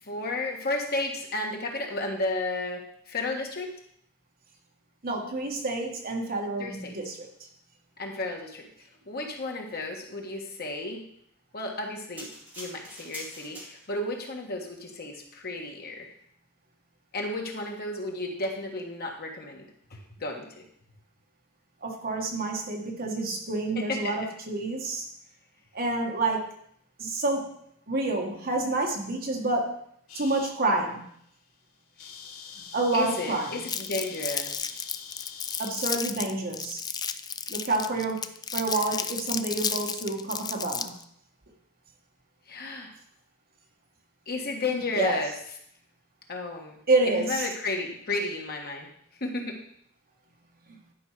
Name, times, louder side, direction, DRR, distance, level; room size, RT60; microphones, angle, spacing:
voice 1, 0.1-3.7 6.6-6.9 8.0-8.6 9.1-11.0 11.5-12.3 12.6-16.1 17.1-19.6 19.9-20.6 23.7-24.1 32.9-34.7 42.5-42.9 44.3-45.3 46.3-46.8 47.0-48.9 49.2-49.6, left 2 dB, 45° left, 1 dB, 1.5 m, -32 dB
voice 2, 5.0-7.3 21.8-25.1 25.7-26.5 27.0-27.5 27.9-29.7 30.1-31.1 32.7-33.5 35.6-36.8 37.5-40.9 44.7-45.2 46.9-47.5 50.7-50.8, right 2 dB, 45° right, 1 dB, 1.5 m, -28 dB
sound 1, 12.2-14.1 14.8-14.9, equal, 5° right, 2.3 m, -43 dB
sound 2, 30.1-30.5 31.1-31.3 31.5-31.6 31.8-35.8, left 7 dB, 85° left, 1.2 m, -44 dB
Crumpling crinkling, 33.7-41.0, left 7 dB, 20° left, 0.3 m, -32 dB
11.0 x 5.3 x 4.9 m, 0.68 s
head